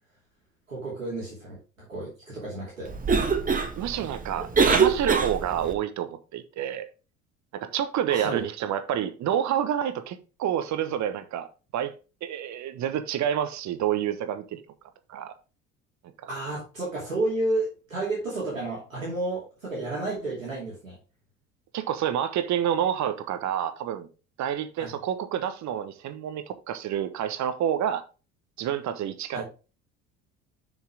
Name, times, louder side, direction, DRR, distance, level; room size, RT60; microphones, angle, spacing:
voice 1, 0.7-2.9 8.1-8.5 16.3-21.0 24.8-24.9 29.3-29.4, right 2 dB, 85° right, 2.7 m, -31 dB
Cough, 2.9-5.7, right 5 dB, 20° right, 1.5 m, -24 dB
voice 2, 3.8-6.9 7.5-11.5 11.7-11.9 12.2-14.6 15.1-15.3 21.7-24.1 24.4-28.0 28.6-29.4, right 10 dB, 45° right, 1.2 m, -28 dB
7.2 x 6.2 x 3.5 m
figure-of-eight pair, 55°, 39 cm